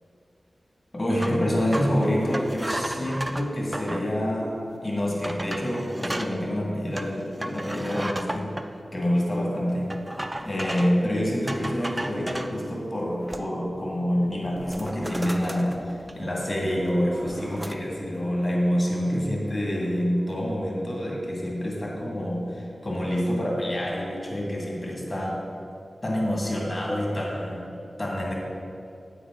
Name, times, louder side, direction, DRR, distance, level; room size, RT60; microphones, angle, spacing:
voice 1, 0.9-8.5 8.9-9.9 10.4-25.5 26.0-27.6 28.0-28.3, equal, 40° left, -3 dB, 2.2 m, -27 dB
sound 1, 1.2-4.1 4.7-4.8 5.2-6.3 6.9-8.7 9.9-11.0 11.5-12.6 13.0-13.7 14.0-14.2 14.6-16.4 16.8-17.7, right 1 dB, 15° right, 0.4 m, -34 dB
9.2 x 8.4 x 3.8 m, 2.5 s
wide cardioid pair, 100°, 0 cm